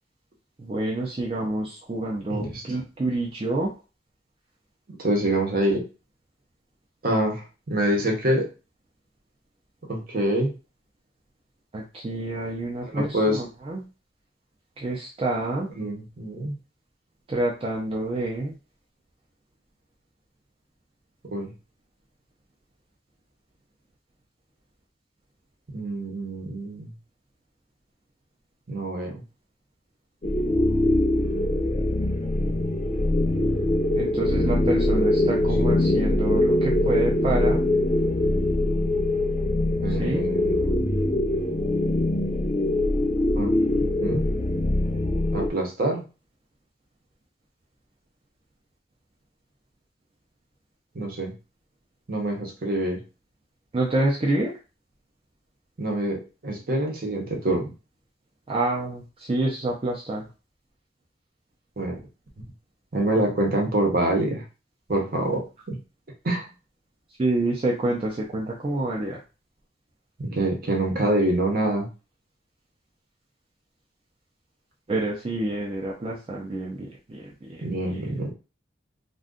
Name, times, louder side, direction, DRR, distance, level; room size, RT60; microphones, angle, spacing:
voice 1, 0.6-3.7 11.7-13.8 14.8-15.7 17.3-18.5 33.9-37.6 39.9-40.2 53.7-54.5 58.5-60.3 67.2-69.2 74.9-77.6 77.9-78.0, right 2 dB, 30° right, -2 dB, 0.5 m, -28 dB
voice 2, 2.3-2.8 5.0-5.9 7.0-8.5 9.9-10.5 12.9-13.4 15.8-16.6 21.2-21.5 25.7-26.9 28.7-29.2 32.4-33.1 39.8-40.8 43.4-44.2 45.3-46.0 50.9-51.3 52.1-53.0 55.8-57.7 61.8-62.0 62.9-64.4 64.9-65.8 66.2-66.4 70.2-71.9 77.6-78.3, right 1 dB, 55° right, 1 dB, 0.8 m, -26 dB
sound 1, 30.2-45.5, left 1 dB, 40° left, 0.6 m, -23 dB
2.5 x 2.3 x 3.7 m, 0.31 s
head